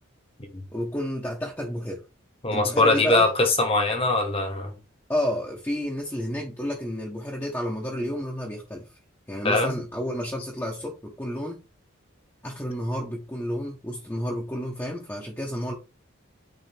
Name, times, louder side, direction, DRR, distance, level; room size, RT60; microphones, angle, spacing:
voice 1, 0.7-2.0 2.5-3.3 5.1-8.9 9.3-11.6 12.4-15.7, equal, 10° left, 1.1 m, -30 dB
voice 2, 2.4-4.7 9.4-9.8, left 2 dB, 25° left, 1.3 m, -22 dB
9.2 x 3.6 x 3.5 m
head